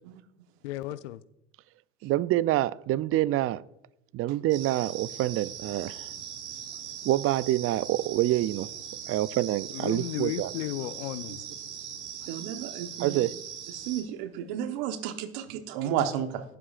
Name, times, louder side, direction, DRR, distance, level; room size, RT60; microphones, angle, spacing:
voice 1, 0.6-1.2 9.7-11.4, left 16 dB, 85° left, 0.5 m, -34 dB
voice 2, 2.0-3.6 4.1-6.1 7.0-8.7 9.1-10.5 13.0-13.3, right 15 dB, 40° right, 0.4 m, -26 dB
sound 1, 4.5-14.0, right 8 dB, 90° right, 1.4 m, -40 dB
voice 3, 12.3-13.2 13.8-16.4, right 9 dB, 70° right, 1.1 m, -32 dB
19.0 x 7.6 x 2.4 m
hypercardioid pair, 75°, 34 cm